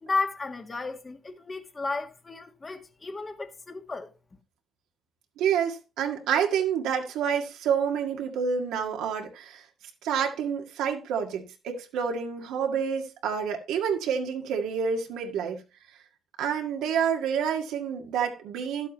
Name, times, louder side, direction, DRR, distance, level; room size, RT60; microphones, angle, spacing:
voice 1, 0.0-4.1, left 3 dB, 30° left, 1.6 m, -33 dB
voice 2, 5.4-9.6 10.0-15.6 16.4-18.9, right 7 dB, 90° right, 1.9 m, -28 dB
12.0 x 8.3 x 3.1 m
cardioid pair, 90°, 0 cm